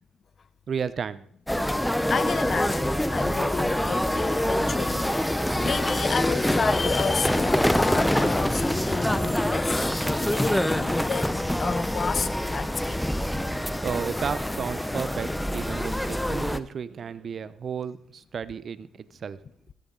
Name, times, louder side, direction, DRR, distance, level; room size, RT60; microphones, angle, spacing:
voice 1, 0.7-1.2 13.8-19.4, right 6 dB, 50° right, 0.8 m, -33 dB
sound 1, 1.5-16.6, left 1 dB, 5° left, 0.8 m, -25 dB
voice 2, 2.1-13.0 13.3-13.5, left 6 dB, 45° left, 0.7 m, -31 dB
15.5 x 14.5 x 4.0 m
cardioid pair, 90°, 0 cm